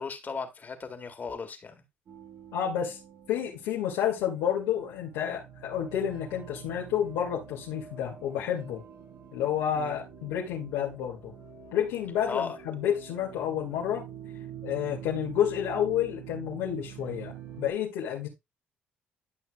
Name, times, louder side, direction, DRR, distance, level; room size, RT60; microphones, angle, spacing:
voice 1, 0.0-1.8 9.7-10.0 12.3-12.6, left 5 dB, 40° left, 2.0 m, -36 dB
sound 1, 2.1-17.7, right 9 dB, 60° right, 3.8 m, -46 dB
voice 2, 2.5-3.0 3.3-8.8 9.3-11.3 11.7-14.1 14.6-18.3, left 9 dB, 80° left, 2.1 m, -30 dB
12.0 x 5.9 x 2.3 m
supercardioid pair, 65°, 5 cm